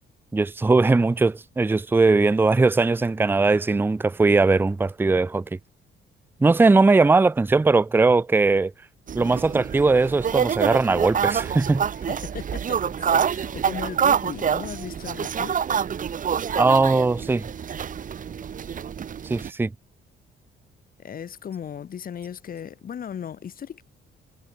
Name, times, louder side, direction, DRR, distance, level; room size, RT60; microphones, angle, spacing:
voice 1, 0.3-5.4 6.4-8.7 9.1-11.8 16.6-17.5 19.2-19.7, right 3 dB, 10° right, 0.5 m, -19 dB
sound 1, 9.1-19.5, right 8 dB, 40° right, 1.1 m, -27 dB
voice 2, 11.9-15.6 21.0-23.8, left 8 dB, 45° left, 1.5 m, -36 dB
cardioid pair, 145°, 21 cm